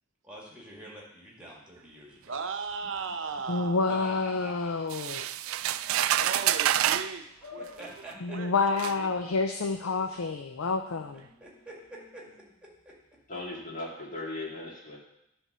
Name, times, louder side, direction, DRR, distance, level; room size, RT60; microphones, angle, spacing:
voice 1, 0.2-2.4 3.9-4.7 7.6-8.4 11.4-12.3 12.9-13.0, right 1 dB, 5° right, -3 dB, 1.8 m, -46 dB
voice 2, 2.3-3.9 6.1-7.3 7.5-7.9 8.3-9.1, right 5 dB, 60° right, 7 dB, 0.7 m, -37 dB
voice 3, 3.5-5.3 8.2-11.2, left 4 dB, 80° left, 5 dB, 0.5 m, -28 dB
sound 1, 4.9-7.1 8.1-8.2 8.8-9.0, right 12 dB, 80° right, 0.3 m, -27 dB
sound 2, 7.4-13.8, left 4 dB, 20° left, 1.7 m, -54 dB
voice 4, 13.3-15.0, left 2 dB, 40° left, -4 dB, 2.1 m, -38 dB
10.0 x 3.5 x 6.7 m, 0.80 s
head